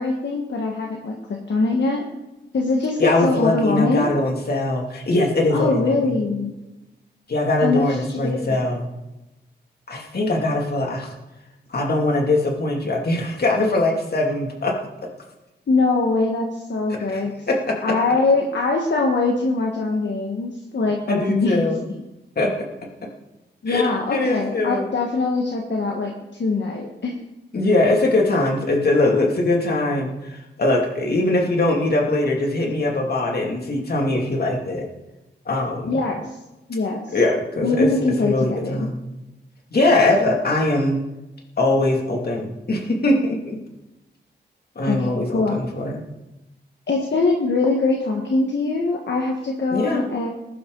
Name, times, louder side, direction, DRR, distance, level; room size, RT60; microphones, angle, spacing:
voice 1, 0.0-2.1 2.5-4.1 5.5-6.5 7.6-7.8 8.1-8.6 15.7-17.3 17.8-21.6 23.6-27.1 35.9-36.3 36.7-37.1 37.6-38.9 44.8-45.6 46.9-50.3, left 3 dB, 75° left, 0 dB, 1.6 m, -22 dB
voice 2, 3.0-6.2 7.3-8.9 9.9-11.1 11.7-14.8 17.1-17.9 21.1-21.8 22.4-22.7 23.7-23.8 24.1-24.9 27.5-34.9 35.5-36.0 37.1-37.9 38.2-39.0 39.7-41.0 41.6-43.6 44.8-46.0 49.7-50.0, left 2 dB, 60° left, 0 dB, 2.7 m, -21 dB
20.0 x 11.5 x 4.0 m, 0.99 s
wide cardioid pair, 130°, 18 cm